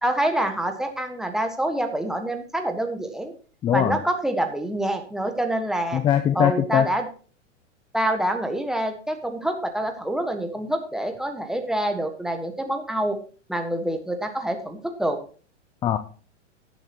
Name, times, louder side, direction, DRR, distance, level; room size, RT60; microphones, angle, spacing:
voice 1, 0.0-3.3 3.7-6.0 6.3-7.1 7.9-13.2 13.5-15.2, right 1 dB, ahead, 5 dB, 1.5 m, -26 dB
voice 2, 3.6-4.0 5.9-6.9 15.8-16.0, left 10 dB, 15° left, 11 dB, 0.4 m, -21 dB
17.0 x 7.1 x 3.0 m, 0.39 s
figure-of-eight pair, 100°, 37 cm